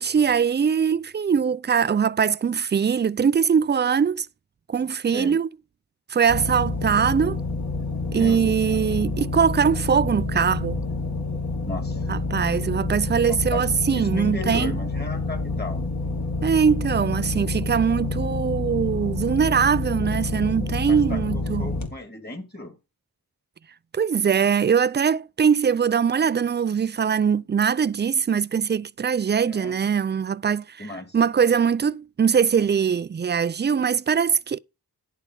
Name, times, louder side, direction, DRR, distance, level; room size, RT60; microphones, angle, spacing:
voice 1, 0.0-4.3 4.7-5.5 6.1-7.4 8.1-10.8 12.1-14.8 16.4-21.7 23.9-30.9 31.1-34.6, right 7 dB, 30° right, 0.4 m, -22 dB
voice 2, 5.1-5.4 8.2-8.8 11.6-12.1 13.3-15.9 20.9-22.8 29.5-29.9 30.8-31.2, left 2 dB, 25° left, 2.5 m, -35 dB
sound 1, 6.3-21.9, left 3 dB, 45° left, 2.2 m, -28 dB
11.0 x 4.5 x 5.4 m
wide cardioid pair, 60°, 38 cm